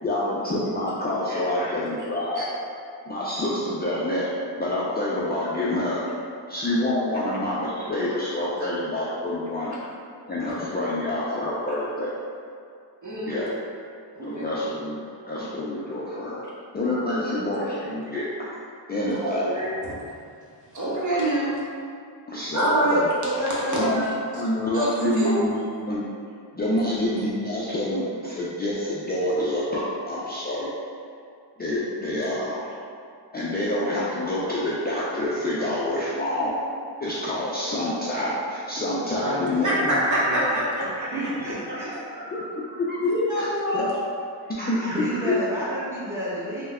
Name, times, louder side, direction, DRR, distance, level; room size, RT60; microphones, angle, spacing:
voice 1, 0.0-2.5 3.1-4.3 4.6-6.0 6.5-9.7 10.3-12.1 13.3-13.5 14.2-16.4 16.7-18.2 18.9-19.5 20.9-21.0 22.3-23.0 23.8-24.0 24.3-26.0 26.5-30.7 31.6-32.7 33.3-36.6 37.0-40.0 40.3-40.5 42.1-43.9 44.5-45.3, left 1 dB, 25° left, -8 dB, 0.4 m, -27 dB
voice 2, 1.3-1.7 2.3-2.4 8.6-8.7 13.0-13.5 14.1-14.4 19.2-19.7 20.7-21.5 22.5-24.1 24.7-25.3 39.6-41.1 43.0-43.9, right 1 dB, 40° right, -7 dB, 0.9 m, -25 dB
voice 3, 39.1-40.4 40.9-41.9 44.9-46.7, right 1 dB, 5° right, -10 dB, 1.1 m, -31 dB
3.2 x 2.1 x 3.5 m, 2.4 s
cardioid pair, 80°, 44 cm